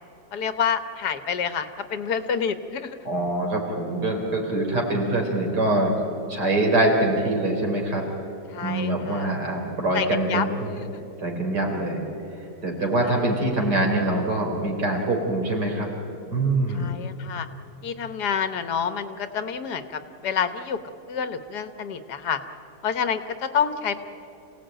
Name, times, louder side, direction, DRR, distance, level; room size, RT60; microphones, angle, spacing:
voice 1, 0.3-3.0 8.5-9.3 9.9-10.5 10.7-10.8 13.0-13.1 16.7-17.5 17.8-19.9 20.2-20.8 21.1-22.4 22.8-24.0, left 7 dB, 75° left, 11 dB, 1.7 m, -28 dB
voice 2, 3.0-6.0 6.3-8.0 8.6-10.7 11.2-12.0 12.4-15.9 16.3-17.0, right 2 dB, 85° right, 1 dB, 4.2 m, -24 dB
27.0 x 17.5 x 9.0 m, 2.9 s
omnidirectional pair, 1.7 m